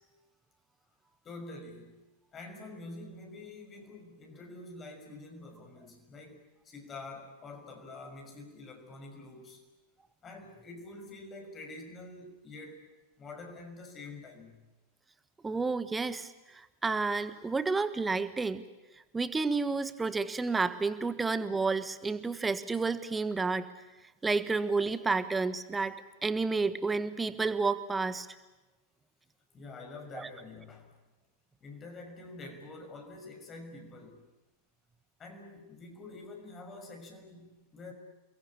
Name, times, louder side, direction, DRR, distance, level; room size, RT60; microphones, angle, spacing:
voice 1, 1.2-2.0 2.3-9.6 10.2-12.8 13.2-14.6 29.5-30.9 31.6-34.2 35.2-37.9, left 2 dB, 25° left, 3 dB, 6.3 m, -47 dB
voice 2, 15.4-18.6 19.1-23.7 24.2-26.0 26.2-28.3 30.1-30.3, right 4 dB, 10° right, 13 dB, 1.5 m, -30 dB
29.0 x 22.0 x 8.7 m, 1.1 s
figure-of-eight pair, 90°, 0 cm